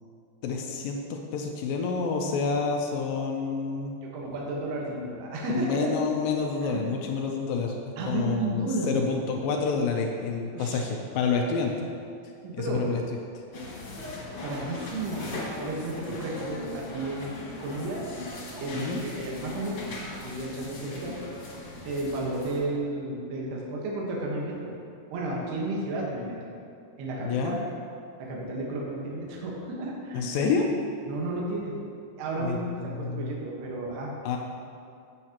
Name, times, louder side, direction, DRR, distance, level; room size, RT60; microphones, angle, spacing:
voice 1, 0.4-4.0 5.5-7.8 8.1-11.7 12.5-13.0 16.1-16.2 18.7-19.0 27.2-27.6 30.1-30.7 32.4-32.6 32.9-33.3 34.2-34.4, left 5 dB, 85° left, 2 dB, 2.0 m, -28 dB
voice 2, 4.0-5.9 6.6-6.8 8.0-8.9 10.5-10.8 12.4-12.9 14.4-15.3 15.6-18.0 18.6-21.1 21.8-24.8 25.1-26.5 27.0-27.6 28.2-30.3 31.1-31.8 32.2-34.1, right 2 dB, 70° right, -3 dB, 3.2 m, -33 dB
sound 1, 13.5-22.6, left 2 dB, 45° left, 2.0 m, -39 dB
15.5 x 7.3 x 3.0 m, 2.5 s
omnidirectional pair, 5.0 m